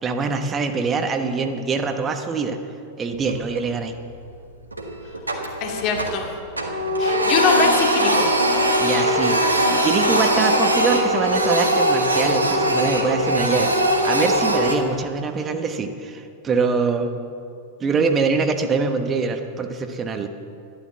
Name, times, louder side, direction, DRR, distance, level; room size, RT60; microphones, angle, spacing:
voice 1, 0.0-2.6 3.0-3.9 8.8-9.4 9.7-17.1 17.8-20.3, right 4 dB, 25° right, 6 dB, 1.2 m, -24 dB
Printer, 3.2-3.8 4.1-4.3 4.7-6.3 6.5-14.8, right 1 dB, 80° right, 1.7 m, -20 dB
voice 2, 5.6-6.3 7.0-8.3, left 5 dB, 40° left, 2 dB, 2.3 m, -23 dB
12.5 x 12.5 x 7.3 m, 2.4 s
figure-of-eight pair, 90°, 0 cm